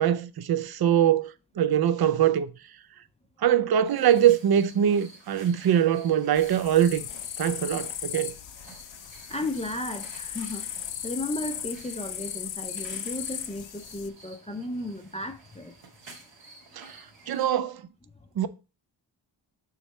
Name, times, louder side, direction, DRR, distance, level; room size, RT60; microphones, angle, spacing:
voice 1, 0.0-2.5 3.4-7.0 7.4-8.3 16.8-16.9 17.3-17.8 18.4-18.5, right 10 dB, 55° right, 0.5 m, -23 dB
sound 1, 3.9-17.5, right 3 dB, 70° right, 2.0 m, -51 dB
sound 2, 6.4-14.1, left 10 dB, 75° left, 0.5 m, -37 dB
voice 2, 9.3-10.7 11.0-15.8 17.3-17.4, left 1 dB, 15° left, 0.4 m, -34 dB
6.4 x 3.2 x 5.5 m
wide cardioid pair, 165°, 45 cm